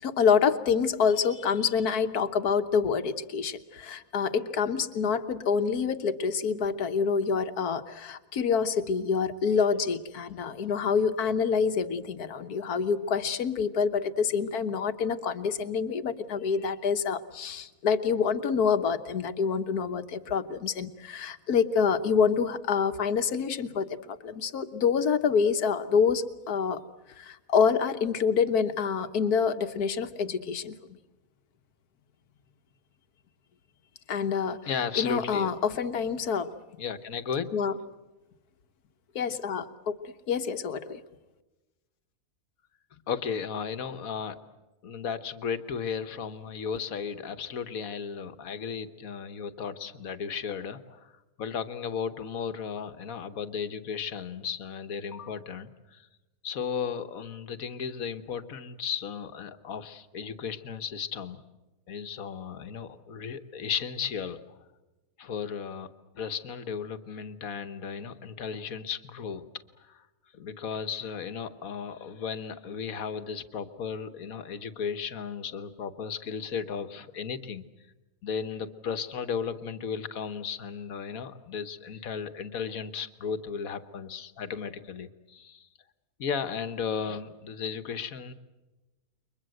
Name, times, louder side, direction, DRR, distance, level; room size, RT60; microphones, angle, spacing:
voice 1, 0.0-26.8 27.2-31.0 34.1-34.6 35.0-36.5 37.5-37.7 39.1-41.0, left 6 dB, 85° left, 10 dB, 1.7 m, -27 dB
voice 2, 34.6-35.5 36.8-37.5 42.9-44.4 44.8-51.1 51.4-56.1 56.4-61.4 61.9-64.4 65.2-69.4 69.8-70.0 70.3-77.7 78.2-85.7 86.2-88.3, left 6 dB, 70° left, 11 dB, 1.6 m, -35 dB
29.0 x 23.5 x 7.8 m, 1.1 s
omnidirectional pair, 1.6 m